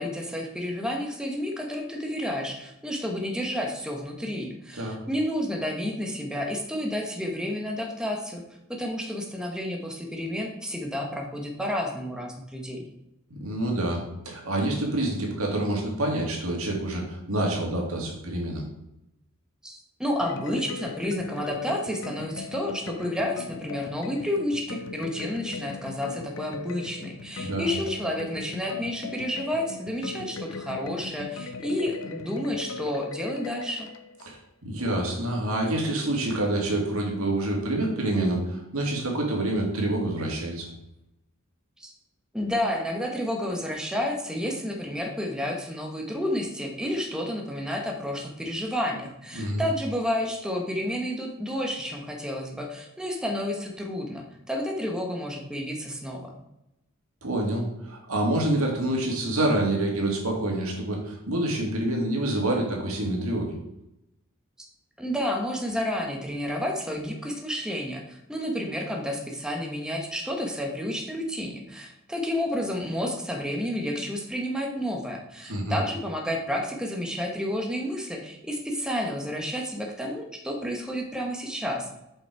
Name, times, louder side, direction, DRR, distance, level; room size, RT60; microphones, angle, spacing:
voice 1, 0.0-8.4 8.7-12.8 19.6-33.9 41.8-41.9 42.3-56.3 65.0-81.9, left 1 dB, 5° right, 1 dB, 1.1 m, -30 dB
voice 2, 13.3-18.6 27.4-27.7 34.2-40.7 49.3-49.6 57.2-63.5 75.4-75.8, right 1 dB, 85° right, 0 dB, 2.3 m, -27 dB
sound 1, 20.2-34.3, left 4 dB, 65° left, 0.6 m, -39 dB
7.8 x 5.4 x 4.7 m, 0.87 s
head